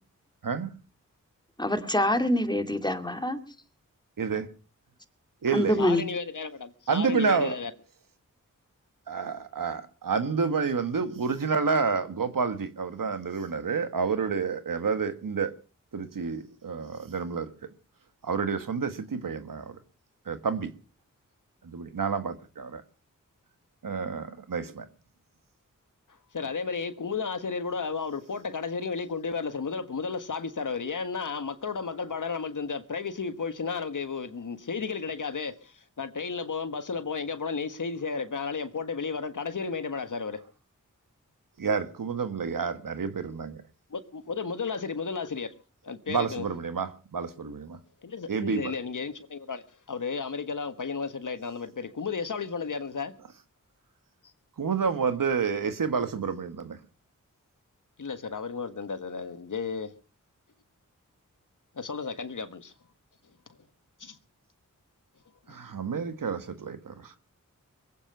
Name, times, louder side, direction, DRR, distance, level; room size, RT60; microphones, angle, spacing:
voice 1, 1.6-3.4 5.5-6.1, left 1 dB, 15° left, 2.5 m, -25 dB
voice 2, 4.2-4.5 5.4-5.9 6.9-7.6 9.1-15.5 15.9-17.5 18.2-19.8 20.2-20.7 21.6-22.8 23.8-24.9 41.6-43.6 46.1-47.8 48.3-48.7 54.6-56.8 65.5-67.1, right 5 dB, 80° right, 1.6 m, -29 dB
voice 3, 5.8-7.7 26.3-40.4 43.9-45.5 45.8-46.4 48.0-53.1 58.0-59.9 61.7-62.7 64.0-64.2 65.5-65.6, left 5 dB, 70° left, 1.5 m, -33 dB
22.0 x 8.8 x 6.7 m
cardioid pair, 45°, 33 cm